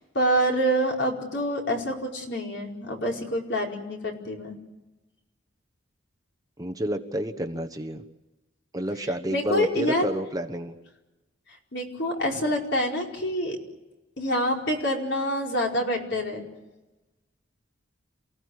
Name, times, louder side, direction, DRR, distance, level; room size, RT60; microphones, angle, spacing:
voice 1, 0.1-4.5 9.3-10.1 11.7-13.6 14.2-16.4, equal, 60° left, 0 dB, 4.9 m, -26 dB
voice 2, 6.6-8.0 8.7-10.7, right 1 dB, 20° right, 7 dB, 1.2 m, -30 dB
28.5 x 17.0 x 9.7 m, 1.1 s
head